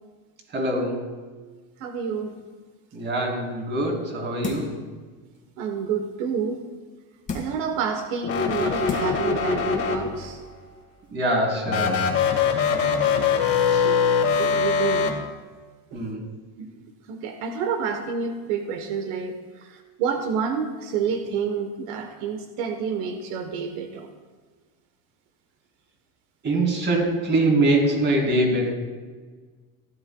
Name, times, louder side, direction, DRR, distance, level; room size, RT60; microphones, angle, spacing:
voice 1, 0.5-1.1 2.9-4.8 11.1-12.0 13.7-13.9 15.9-16.2 26.4-28.7, right 1 dB, 25° right, 0 dB, 3.0 m, -23 dB
voice 2, 1.8-2.4 5.6-6.6 7.3-10.4 13.0-13.4 13.8-13.9 14.4-15.2 15.9-16.0 16.6-16.7 17.1-24.1, right 6 dB, 70° right, 5 dB, 1.1 m, -29 dB
sound 1, 4.4-4.9 5.3-5.4 7.3-7.7 8.4-8.5 8.9-9.3 9.7-9.8, left 4 dB, 20° left, 1.8 m, -33 dB
sound 2, 8.2-10.4 11.7-15.1, left 6 dB, 35° left, 1.8 m, -22 dB
16.5 x 11.0 x 2.2 m, 1.4 s
cardioid pair, 140°, 39 cm